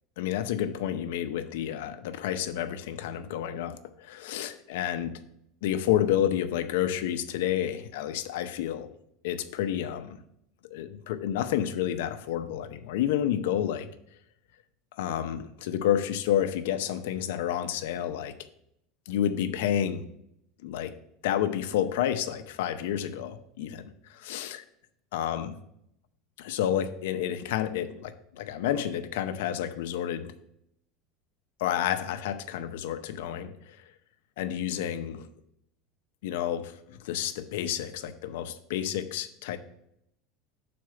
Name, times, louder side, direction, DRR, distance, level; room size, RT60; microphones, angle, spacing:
voice 1, 0.2-5.2 5.6-8.9 9.2-10.2 10.6-13.9 14.9-18.4 19.1-20.0 20.6-21.0 21.2-23.9 24.2-24.6 25.1-25.6 26.4-30.4 31.6-33.8 34.4-35.3 36.2-39.6, left 10 dB, 80° left, 0.6 m, -30 dB
6.4 x 4.2 x 5.7 m
supercardioid pair, 150°, 0 cm